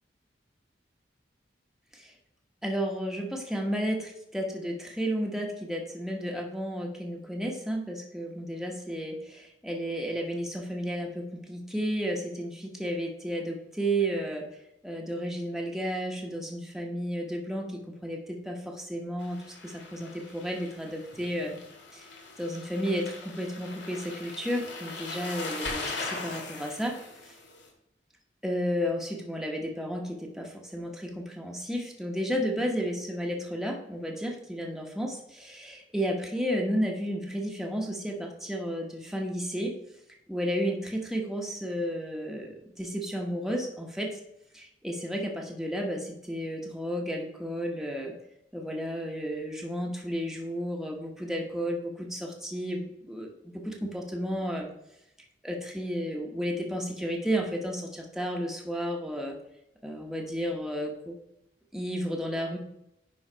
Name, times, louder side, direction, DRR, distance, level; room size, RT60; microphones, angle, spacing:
voice 1, 2.6-14.5 14.8-21.6 21.9-22.1 22.4-27.0 27.2-27.3 28.4-39.7 40.3-44.2 44.5-48.1 48.5-54.7 55.4-59.4 59.8-61.2 61.7-62.6, equal, ahead, 0 dB, 1.0 m, -32 dB
sound 1, 19.2-27.7, left 3 dB, 75° left, 2.1 m, -40 dB
9.9 x 3.9 x 5.0 m, 0.81 s
head